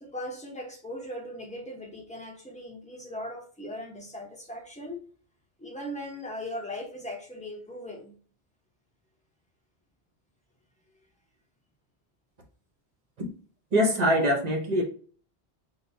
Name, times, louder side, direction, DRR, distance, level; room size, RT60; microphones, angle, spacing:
voice 1, 0.0-5.0 5.6-8.1, left 1 dB, 5° left, 0.8 m, -39 dB
voice 2, 13.7-14.8, equal, 40° right, 0.9 m, -23 dB
6.1 x 2.3 x 2.6 m
omnidirectional pair, 1.1 m